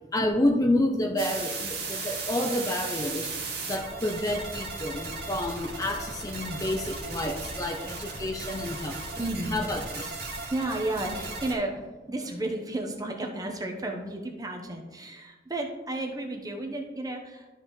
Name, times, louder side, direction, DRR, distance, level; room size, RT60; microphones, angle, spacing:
voice 1, 0.1-3.3 3.7-9.0 9.5-10.1, left 1 dB, 20° left, 3 dB, 0.6 m, -29 dB
sound 1, 1.2-11.5, right 3 dB, 60° right, 2.1 m, -36 dB
voice 2, 9.2-9.6 10.2-17.5, right 2 dB, 20° right, 2 dB, 1.0 m, -33 dB
12.5 x 5.5 x 3.2 m, 1.2 s
head